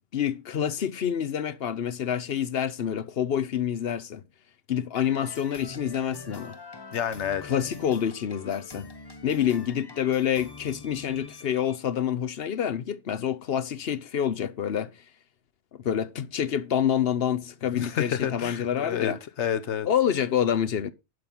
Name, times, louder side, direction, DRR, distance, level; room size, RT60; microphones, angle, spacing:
voice 1, 0.1-4.2 4.7-6.6 7.4-8.9 9.2-14.9 15.8-19.2 19.8-20.9, left 9 dB, 65° left, 0.9 m, -27 dB
sound 1, 4.9-11.8, left 4 dB, 25° left, 0.9 m, -44 dB
voice 2, 6.9-7.4 17.7-19.9, left 9 dB, 90° left, 1.2 m, -29 dB
11.5 x 5.2 x 5.9 m
omnidirectional pair, 1.1 m